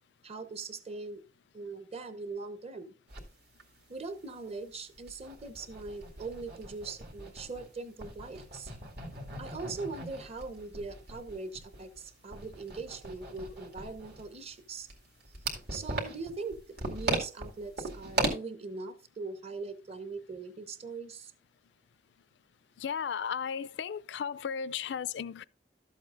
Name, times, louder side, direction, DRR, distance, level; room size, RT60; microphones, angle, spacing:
voice 1, 0.2-1.2 1.5-2.9 3.9-8.7 9.4-14.9 15.7-16.6 16.9-21.3, right 3 dB, 35° right, 0.9 m, -41 dB
sound 1, 3.1-3.2 3.6-3.7 4.0-4.1 4.6-7.7 8.0-18.3, right 2 dB, 65° right, 2.3 m, -38 dB
voice 2, 22.8-25.4, left 7 dB, 75° left, 0.4 m, -35 dB
12.5 x 7.7 x 2.5 m
head